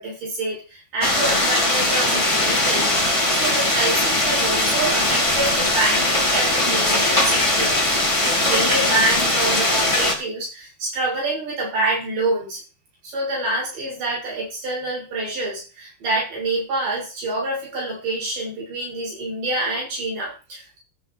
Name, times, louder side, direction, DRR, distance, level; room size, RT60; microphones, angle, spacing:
voice 1, 0.0-3.0 3.3-7.8 8.2-12.6 13.0-20.8, right 2 dB, 45° right, -4 dB, 8.5 m, -26 dB
sound 1, 1.0-10.1, left 1 dB, 15° left, 0.9 m, -20 dB
15.5 x 8.5 x 4.2 m, 0.33 s
omnidirectional pair, 5.4 m